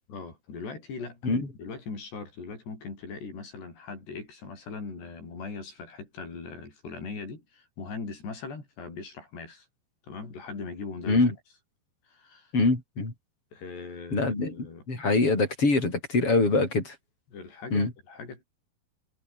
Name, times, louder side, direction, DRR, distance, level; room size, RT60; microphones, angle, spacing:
voice 1, 0.1-1.3 1.6-9.7 10.0-11.2 12.1-12.5 13.5-14.8 17.3-18.4, left 4 dB, 85° left, 10.0 m, -40 dB
voice 2, 12.5-13.1 14.1-16.9 17.7-17.9, left 3 dB, 35° left, 8.2 m, -24 dB
omnidirectional pair, 4.7 m